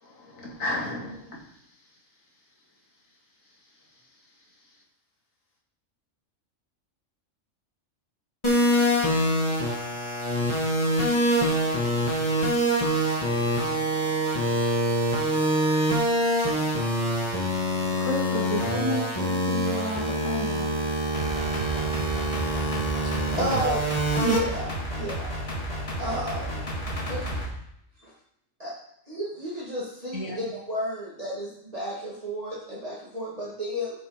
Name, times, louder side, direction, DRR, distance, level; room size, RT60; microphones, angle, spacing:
voice 1, 0.0-2.0 3.4-4.8 30.1-30.4, left 1 dB, 85° left, -3 dB, 2.6 m, -37 dB
sound 1, 8.4-24.4, right 1 dB, 20° left, 1.8 m, -25 dB
voice 2, 18.0-20.7, left 1 dB, 10° right, -6 dB, 2.3 m, -32 dB
sound 2, 21.1-27.5, equal, 50° left, 2.1 m, -32 dB
voice 3, 23.0-23.8 24.2-25.3 26.0-26.7 27.1-27.3 28.0-28.1 28.6-28.7 29.1-33.9, equal, 30° right, -8 dB, 2.0 m, -32 dB
9.2 x 6.2 x 5.0 m, 0.73 s
omnidirectional pair, 1.3 m